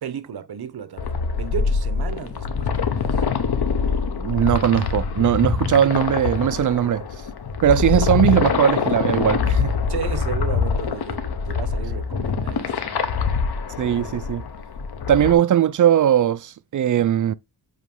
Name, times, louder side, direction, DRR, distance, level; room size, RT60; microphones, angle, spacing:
voice 1, 0.0-3.2 9.9-13.0, right 8 dB, 70° right, 1.1 m, -34 dB
sound 1, 1.0-15.3, left 5 dB, 70° left, 1.2 m, -24 dB
voice 2, 4.2-7.0 7.6-9.8 13.8-14.4 15.1-17.3, right 10 dB, 50° right, 0.5 m, -19 dB
8.0 x 3.1 x 5.4 m
wide cardioid pair, 105°, 39 cm